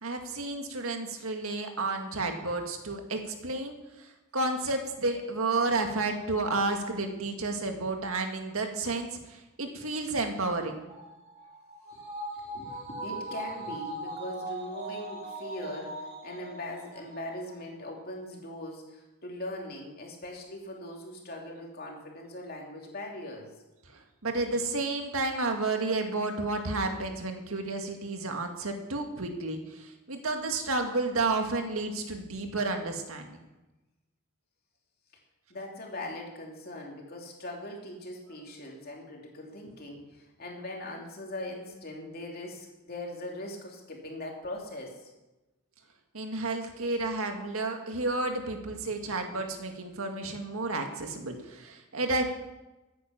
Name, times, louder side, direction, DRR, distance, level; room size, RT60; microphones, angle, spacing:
voice 1, 0.0-10.8 23.9-33.4 46.1-52.2, right 3 dB, 75° right, 4 dB, 1.9 m, -31 dB
sound 1, 10.9-17.6 17.9-18.0, right 1 dB, 25° right, 4.2 m, -40 dB
voice 2, 12.3-23.6 35.5-45.1, left 1 dB, 45° left, 0 dB, 2.9 m, -40 dB
14.5 x 9.5 x 5.8 m, 1.0 s
head